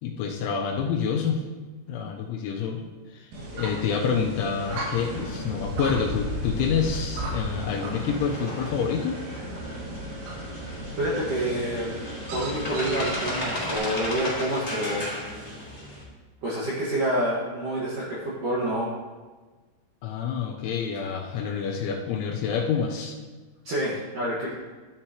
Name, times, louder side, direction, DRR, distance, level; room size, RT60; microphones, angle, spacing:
voice 1, 0.0-1.5 1.9-2.8 3.1-9.2 20.0-23.2, left 6 dB, 80° left, 1 dB, 3.0 m, -28 dB
sound 1, 3.3-13.8, right 1 dB, 85° right, 5.0 m, -35 dB
sound 2, 4.6-16.0, equal, 10° left, 2.4 m, -36 dB
voice 2, 11.0-12.0 12.3-15.1 16.4-18.9 23.6-24.5, right 1 dB, 65° right, -7 dB, 2.2 m, -28 dB
13.0 x 9.8 x 2.9 m, 1.3 s
omnidirectional pair, 5.9 m